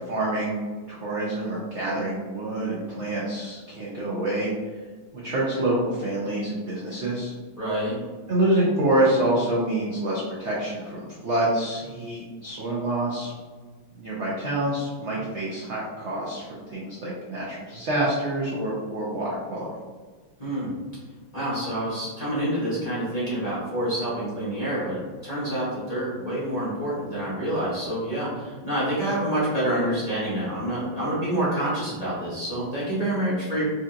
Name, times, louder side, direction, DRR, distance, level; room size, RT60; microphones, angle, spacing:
voice 1, 0.1-0.6 0.9-4.5 5.2-7.3 8.3-13.3 13.9-19.7, right 1 dB, 65° right, -6 dB, 0.7 m, -27 dB
voice 2, 7.6-8.0 20.4-20.7 21.3-33.6, right 1 dB, 25° left, -11 dB, 0.9 m, -27 dB
4.8 x 2.8 x 2.4 m, 1.4 s
omnidirectional pair, 2.1 m